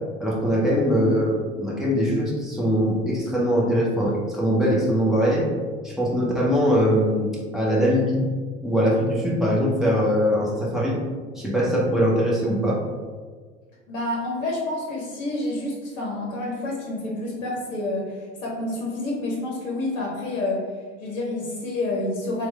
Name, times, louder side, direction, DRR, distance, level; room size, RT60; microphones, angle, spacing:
voice 1, 0.2-5.5 5.8-8.2 8.6-11.0 11.4-12.8, equal, ahead, -5 dB, 0.8 m, -22 dB
voice 2, 13.9-20.6 21.0-22.5, left 2 dB, 60° left, -2 dB, 0.8 m, -28 dB
3.1 x 2.2 x 3.2 m, 1.5 s
figure-of-eight pair, 70°, 38 cm